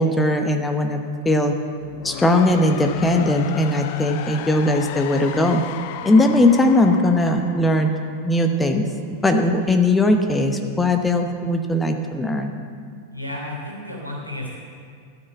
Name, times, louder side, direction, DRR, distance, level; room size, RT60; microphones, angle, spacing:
voice 1, 0.0-1.5 2.0-5.6 6.0-7.9 8.2-8.9 9.2-12.5, left 1 dB, 10° left, 5 dB, 0.8 m, -19 dB
sound 1, 1.8-8.7, left 10 dB, 50° left, 0.5 m, -35 dB
voice 2, 13.1-14.5, left 1 dB, 90° right, -3 dB, 3.1 m, -32 dB
13.0 x 6.5 x 7.6 m, 2.3 s
figure-of-eight pair, 90°, 0 cm